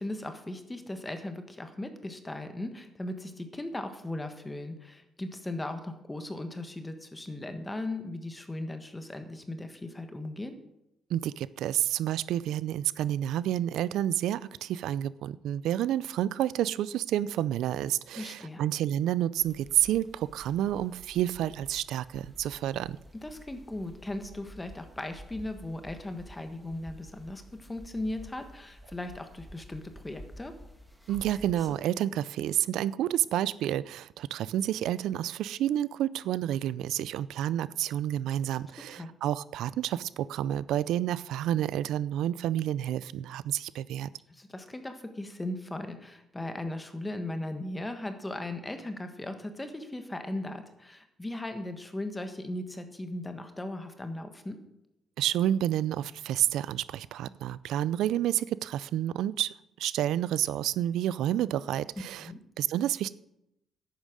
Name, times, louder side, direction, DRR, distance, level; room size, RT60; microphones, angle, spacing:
voice 1, 0.0-10.6 18.1-18.6 23.1-30.5 38.8-39.1 44.3-54.6 62.2-62.4, left 1 dB, 15° left, 7 dB, 1.3 m, -38 dB
voice 2, 11.1-23.0 31.1-44.1 55.2-62.3 62.6-63.1, right 12 dB, 85° right, 19 dB, 0.4 m, -29 dB
sound 1, 19.4-31.8, equal, 5° right, 1.7 m, -50 dB
10.5 x 8.7 x 6.4 m, 0.85 s
cardioid pair, 90°, 0 cm